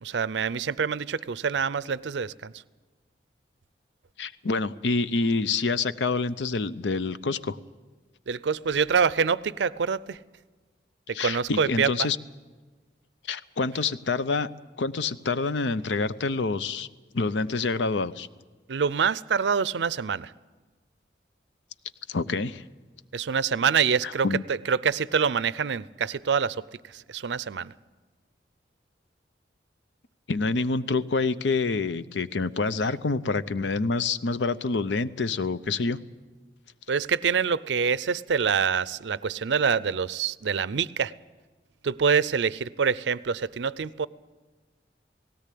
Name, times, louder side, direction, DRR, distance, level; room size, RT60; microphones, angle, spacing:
voice 1, 0.0-2.5 8.3-10.2 11.1-12.1 18.7-20.3 23.1-27.7 36.9-41.1 41.8-44.1, right 6 dB, 80° right, 19 dB, 0.5 m, -26 dB
voice 2, 4.2-7.6 11.1-12.2 13.3-14.5 14.8-16.9 17.1-18.3 22.1-22.6 24.0-24.4 30.3-36.0, left 4 dB, 85° left, 14 dB, 0.6 m, -27 dB
18.0 x 17.0 x 8.4 m, 1.3 s
head